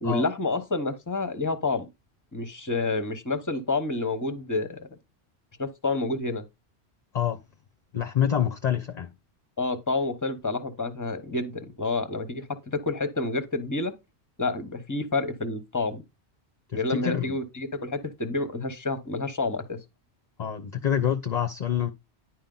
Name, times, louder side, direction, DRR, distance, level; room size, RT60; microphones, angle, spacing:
voice 1, 0.0-1.9 2.3-4.9 5.6-6.4 9.6-14.0 14.4-16.0 16.7-19.8, left 3 dB, 20° left, 0.9 m, -29 dB
voice 2, 7.9-9.1 16.9-17.4 20.4-21.9, left 9 dB, 45° left, 0.7 m, -26 dB
10.5 x 4.8 x 3.8 m
omnidirectional pair, 1.1 m